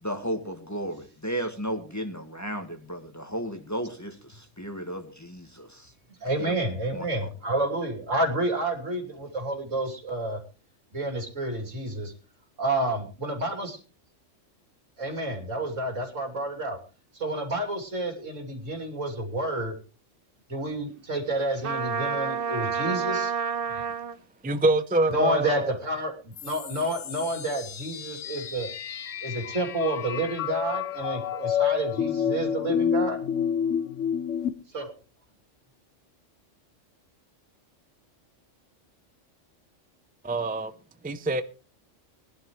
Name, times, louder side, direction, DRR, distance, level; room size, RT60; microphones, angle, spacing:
voice 1, 0.0-5.9 6.4-6.5 6.9-7.3, equal, 15° left, 1.6 m, -34 dB
voice 2, 6.2-10.4 10.9-12.1 12.6-13.8 15.0-16.8 17.1-19.8 20.5-23.9 25.1-28.7 29.2-33.2 34.7-34.9, right 1 dB, 85° right, 3.3 m, -30 dB
Trumpet, 21.6-24.2, right 6 dB, 50° right, 1.0 m, -29 dB
voice 3, 24.4-25.8 40.2-40.7 41.0-41.4, right 2 dB, 10° right, 0.4 m, -25 dB
sound 1, 26.4-34.5, left 8 dB, 85° left, 1.2 m, -29 dB
20.5 x 11.0 x 3.2 m
omnidirectional pair, 1.3 m